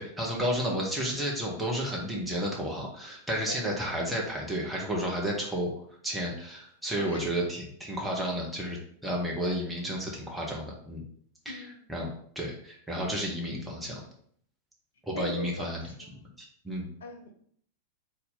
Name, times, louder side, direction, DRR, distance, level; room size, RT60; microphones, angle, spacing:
voice 1, 0.0-5.7 6.0-8.8 9.0-11.0 11.4-11.6 11.9-12.1 12.3-14.0 15.1-15.8 16.4-16.9, equal, 5° right, -3 dB, 0.9 m, -32 dB
voice 2, 6.9-7.3 9.2-9.5 11.5-11.8 15.1-16.2 17.0-17.3, left 2 dB, 65° left, 4 dB, 0.7 m, -41 dB
4.0 x 2.8 x 3.7 m, 0.62 s
figure-of-eight pair, 90°, 0 cm